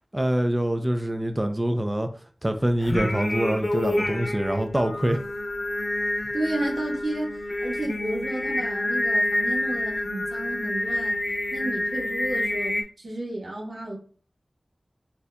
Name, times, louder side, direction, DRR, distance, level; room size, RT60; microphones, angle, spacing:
voice 1, 0.1-2.1 2.4-5.2, right 1 dB, 25° right, 6 dB, 0.4 m, -25 dB
Singing, 2.8-12.8, left 1 dB, 65° left, 0.7 m, -28 dB
voice 2, 6.3-11.2 11.5-14.0, right 1 dB, 85° right, -3 dB, 1.3 m, -32 dB
6.5 x 2.8 x 2.2 m, 0.42 s
wide cardioid pair, 50°, 0 cm